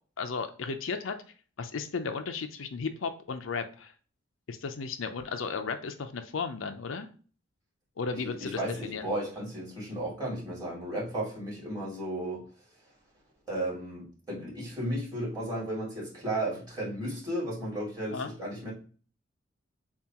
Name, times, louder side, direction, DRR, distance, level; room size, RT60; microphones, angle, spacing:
voice 1, 0.2-1.1 1.6-3.9 4.5-7.1 8.0-9.1 18.1-18.3, left 5 dB, 85° left, 7 dB, 0.5 m, -34 dB
voice 2, 8.2-12.4 13.5-18.7, right 1 dB, 20° right, -6 dB, 2.5 m, -34 dB
7.1 x 2.4 x 2.9 m, 0.39 s
head